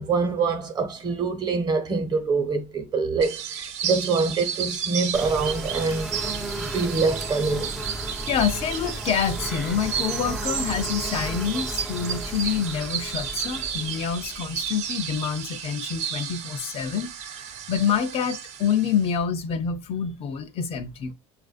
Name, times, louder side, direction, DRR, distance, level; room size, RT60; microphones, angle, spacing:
voice 1, 0.0-6.2 6.6-7.7, right 4 dB, 30° right, 1.1 m, -25 dB
sound 1, 3.2-19.2, right 8 dB, 55° right, 0.7 m, -33 dB
sound 2, 5.1-15.8, right 1 dB, ahead, 0.5 m, -35 dB
voice 2, 8.3-17.1 17.7-21.1, left 7 dB, 45° left, 0.6 m, -27 dB
7.0 x 2.5 x 2.4 m
cardioid pair, 150°, 14 cm